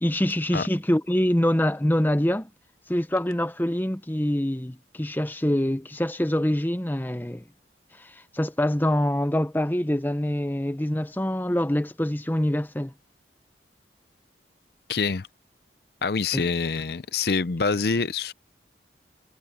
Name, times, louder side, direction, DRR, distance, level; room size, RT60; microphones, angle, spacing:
voice 1, 0.0-2.5 2.9-7.4 8.0-12.9 16.3-16.5, left 1 dB, 10° left, 0.8 m, -25 dB
voice 2, 14.9-15.3 16.0-18.3, left 4 dB, 55° left, 0.6 m, -25 dB
head